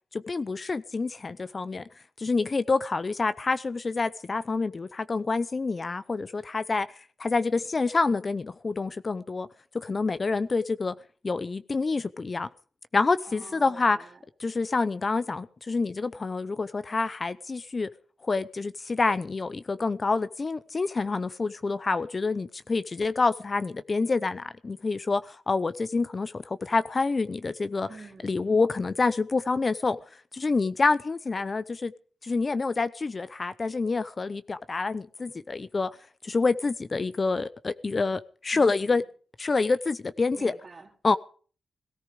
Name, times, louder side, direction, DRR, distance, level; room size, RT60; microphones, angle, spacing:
voice 1, 0.1-1.8 2.2-6.9 7.2-9.5 9.7-10.9 11.2-12.5 12.9-14.0 14.4-17.9 18.2-27.9 28.2-30.0 30.3-31.9 32.2-35.9 36.2-39.0 39.4-40.5 41.0-41.2, left 3 dB, 40° left, 0.7 m, -27 dB
voice 2, 13.3-14.2 27.9-28.4 38.5-39.1 40.3-40.9, right 4 dB, 45° right, 3.5 m, -48 dB
18.0 x 14.0 x 5.1 m
cardioid pair, 80°, 0 cm